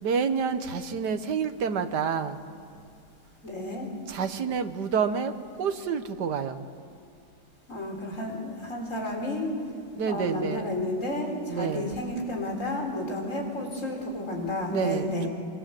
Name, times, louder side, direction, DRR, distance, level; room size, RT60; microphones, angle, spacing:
voice 1, 0.0-2.4 2.7-2.8 4.1-6.6 9.9-10.6 11.5-11.9 14.7-15.3, right 6 dB, 70° right, 9 dB, 1.8 m, -28 dB
voice 2, 3.4-3.9 7.7-9.5 10.1-15.3, left 1 dB, 45° left, 1 dB, 4.5 m, -31 dB
25.0 x 24.5 x 7.7 m, 2.7 s
omnidirectional pair, 1.9 m